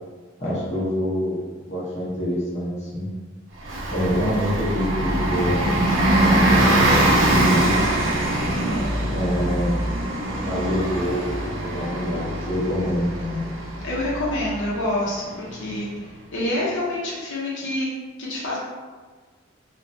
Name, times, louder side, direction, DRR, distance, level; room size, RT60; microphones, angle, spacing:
voice 1, 0.4-1.4 1.7-3.1 3.9-5.8 6.1-7.8 9.1-9.8 10.3-13.4, equal, 35° left, -7 dB, 0.8 m, -26 dB
Bus, 3.6-15.9, right 1 dB, 85° right, 0.6 m, -23 dB
voice 2, 8.5-9.0 13.8-17.9 18.2-18.6, left 1 dB, 70° left, -6 dB, 0.6 m, -27 dB
3.1 x 2.1 x 2.6 m, 1.4 s
head